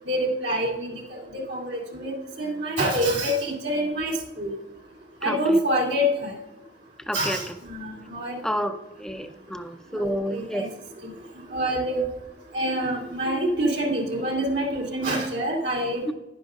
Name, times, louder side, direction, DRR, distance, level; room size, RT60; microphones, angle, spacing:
voice 1, 0.1-4.5 5.2-6.3 7.1-8.4 10.0-10.7 11.5-12.0 12.5-16.0, equal, 75° right, -1 dB, 2.7 m, -26 dB
voice 2, 5.2-5.6 7.1-7.4 8.4-10.8 16.1-16.2, equal, 5° left, 8 dB, 0.5 m, -30 dB
11.0 x 10.5 x 2.4 m, 0.97 s
head